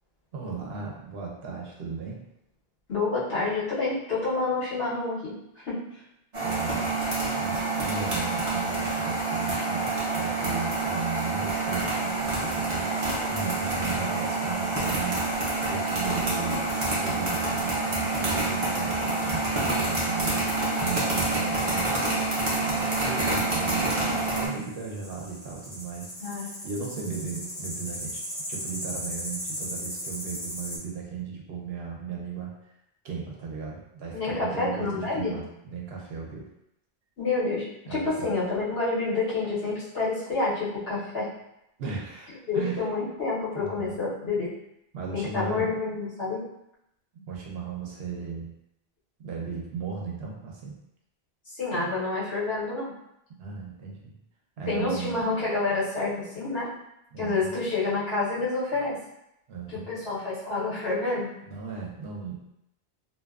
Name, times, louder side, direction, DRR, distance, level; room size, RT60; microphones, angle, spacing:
voice 1, 0.3-2.2 6.4-15.4 15.6-20.4 20.8-22.2 22.6-32.7 33.0-36.4 37.9-38.3 41.8-42.8 43.5-43.9 44.9-45.7 47.1-48.5 49.2-50.8 53.4-54.1 54.6-55.3 57.1-57.5 59.5-59.9 61.4-62.4, right 5 dB, 75° right, -2 dB, 0.8 m, -36 dB
voice 2, 2.9-5.8 26.2-26.5 34.1-35.3 37.2-41.3 42.5-44.5 45.1-46.4 51.6-52.9 54.7-56.7 57.2-59.0 59.7-61.3, left 3 dB, 70° left, -8 dB, 1.2 m, -28 dB
sound 1, 6.3-24.5, right 2 dB, 40° right, 0.6 m, -27 dB
sound 2, 11.9-30.8, equal, 40° left, 0.9 m, -41 dB
2.6 x 2.2 x 2.3 m, 0.81 s
omnidirectional pair, 1.1 m